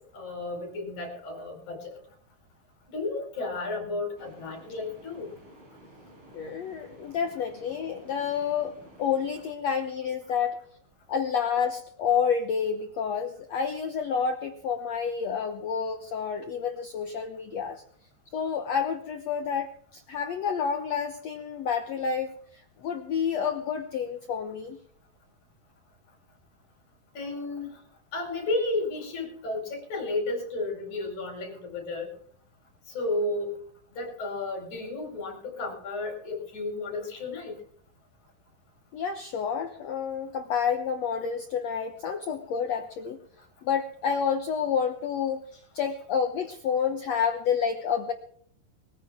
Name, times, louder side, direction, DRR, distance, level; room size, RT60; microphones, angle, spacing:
voice 1, 0.1-2.0 2.9-5.3 27.1-27.7 28.1-32.1 32.9-33.5 33.9-37.6, left 2 dB, 50° left, 2 dB, 6.3 m, -32 dB
sound 1, 4.2-9.5, right 1 dB, 30° right, 5.7 m, -52 dB
voice 2, 6.3-10.6 11.1-17.8 18.3-24.8 38.9-43.2 43.6-45.4 45.7-48.1, left 7 dB, 75° left, 7 dB, 1.5 m, -29 dB
22.5 x 14.5 x 3.6 m, 0.62 s
omnidirectional pair, 4.5 m